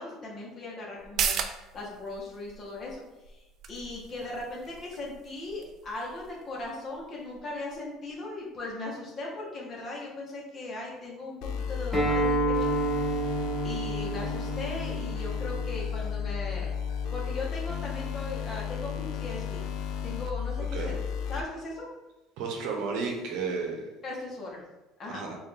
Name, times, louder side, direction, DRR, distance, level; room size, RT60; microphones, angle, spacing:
voice 1, 0.0-1.4 1.7-12.7 13.0-13.3 13.6-16.7 17.1-19.6 20.0-20.9 21.3-21.9 24.0-24.6 25.0-25.2, left 2 dB, 35° left, -3 dB, 1.2 m, -38 dB
sound 1, 1.0-8.1 8.5-8.6, right 7 dB, 50° right, 0.3 m, -38 dB
sound 2, 11.4-21.4, left 8 dB, 70° left, 0.4 m, -33 dB
Acoustic guitar, 11.9-17.1, right 2 dB, 5° left, 0.9 m, -31 dB
voice 2, 22.4-23.8 25.1-25.4, right 4 dB, 75° right, 1 dB, 0.8 m, -32 dB
4.0 x 2.6 x 3.5 m, 1.0 s
cardioid pair, 135°, 0 cm